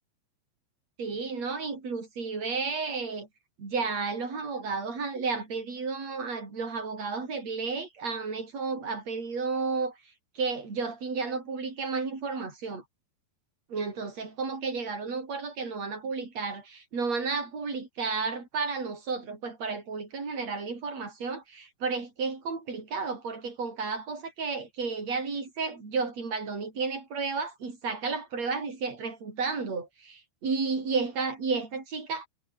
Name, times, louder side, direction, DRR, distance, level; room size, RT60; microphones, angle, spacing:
voice 1, 1.0-3.3 3.6-10.0 10.4-12.8 13.7-32.3, right 4 dB, 35° right, 7.1 m, -32 dB
omnidirectional pair, 5.6 m